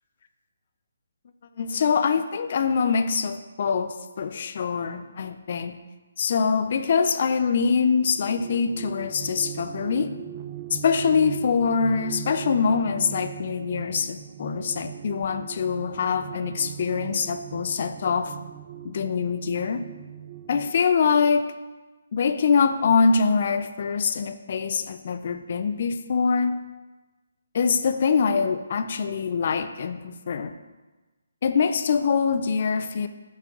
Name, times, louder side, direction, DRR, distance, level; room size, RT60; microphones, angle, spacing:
voice 1, 1.6-5.8 6.2-10.1 10.7-18.3 18.8-19.8 20.5-21.4 22.1-26.6 27.5-30.5 31.4-33.1, left 5 dB, 50° left, 10 dB, 0.4 m, -24 dB
sound 1, 7.9-20.7, right 11 dB, 35° right, 0.3 m, -39 dB
6.0 x 5.6 x 3.6 m, 1.2 s
hypercardioid pair, 150°, 0 cm